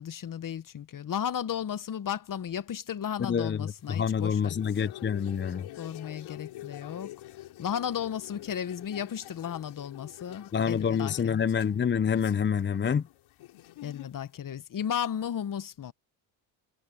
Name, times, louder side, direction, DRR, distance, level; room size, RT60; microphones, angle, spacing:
voice 1, 0.0-4.6 5.8-7.1 7.6-11.4 13.8-15.9, left 9 dB, 40° left, 1.2 m, -34 dB
voice 2, 3.2-5.6 10.5-13.0, left 7 dB, 25° left, 0.6 m, -27 dB
sound 1, 3.8-14.3, left 15 dB, 75° left, 4.3 m, -47 dB
cardioid pair, 85°, 48 cm